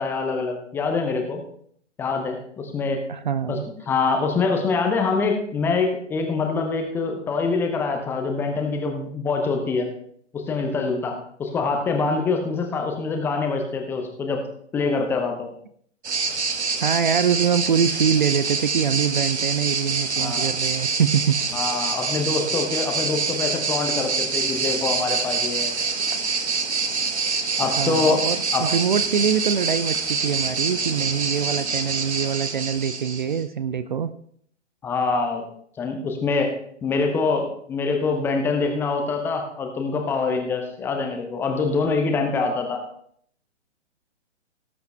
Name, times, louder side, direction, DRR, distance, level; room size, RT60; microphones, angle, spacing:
voice 1, 0.0-1.4 2.0-3.0 3.5-3.6 3.9-9.9 10.3-14.4 14.7-15.5 20.2-20.6 21.5-25.8 27.6-28.2 28.5-28.7 34.8-35.5 35.8-36.5 36.8-42.8, left 4 dB, 5° left, 4 dB, 0.8 m, -25 dB
voice 2, 3.1-3.7 16.8-21.4 27.6-34.1, right 7 dB, 40° right, 13 dB, 0.5 m, -24 dB
sound 1, 16.0-33.4, right 4 dB, 65° right, 1.5 m, -26 dB
18.0 x 8.0 x 3.3 m, 0.64 s
figure-of-eight pair, 130°, 36 cm